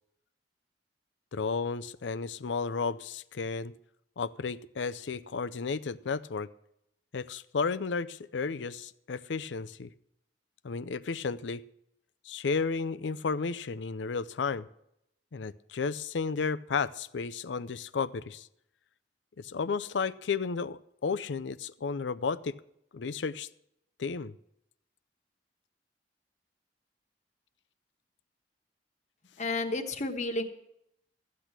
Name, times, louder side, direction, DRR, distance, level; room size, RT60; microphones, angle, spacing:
voice 1, 1.3-3.7 4.2-6.5 7.1-9.9 10.6-11.6 12.3-14.7 15.3-18.5 19.4-22.6 22.9-23.5 24.0-24.3, left 5 dB, 85° left, 16 dB, 0.5 m, -33 dB
voice 2, 29.4-30.4, left 2 dB, 45° left, 7 dB, 1.2 m, -31 dB
14.0 x 8.4 x 6.0 m, 0.77 s
head